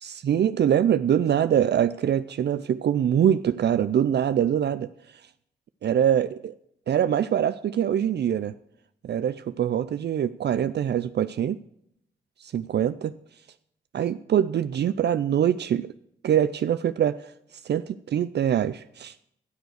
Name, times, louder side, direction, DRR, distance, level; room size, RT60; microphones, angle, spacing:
voice 1, 0.0-4.9 5.8-6.5 6.9-8.5 9.0-11.6 12.4-13.1 13.9-15.9 16.2-17.3 17.6-19.2, right 9 dB, 65° right, 14 dB, 0.4 m, -24 dB
12.5 x 7.0 x 6.3 m, 0.75 s
cardioid pair, 55°, 19 cm